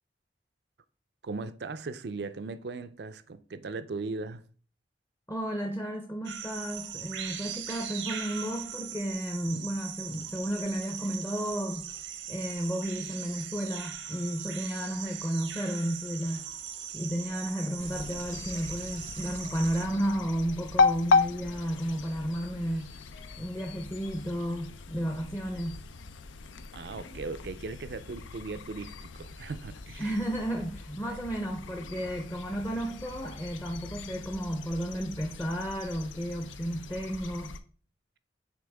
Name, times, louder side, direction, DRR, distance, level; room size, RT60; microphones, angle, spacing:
voice 1, 1.2-4.4 26.7-30.2 31.0-31.2, right 3 dB, 60° right, 0.4 m, -38 dB
voice 2, 5.3-11.9 12.3-16.5 16.9-22.9 23.4-25.8 30.0-37.6, equal, 15° left, 0.6 m, -33 dB
sound 1, 6.2-19.8, right 9 dB, 80° right, 0.8 m, -40 dB
sound 2, 15.6-25.3, left 3 dB, 65° left, 2.8 m, -59 dB
sound 3, 17.8-37.6, left 4 dB, 85° left, 0.5 m, -35 dB
8.8 x 3.4 x 3.4 m
head